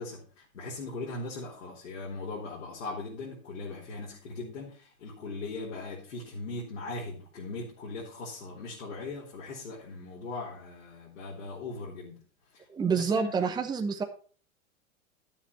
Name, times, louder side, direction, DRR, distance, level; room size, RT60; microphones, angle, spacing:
voice 1, 0.0-12.2 12.5-12.6 12.9-13.4, left 3 dB, 60° left, 3.8 m, -39 dB
voice 2, 12.7-14.0, right 6 dB, 10° right, 1.0 m, -28 dB
12.5 x 7.2 x 4.6 m
figure-of-eight pair, 95°, 41 cm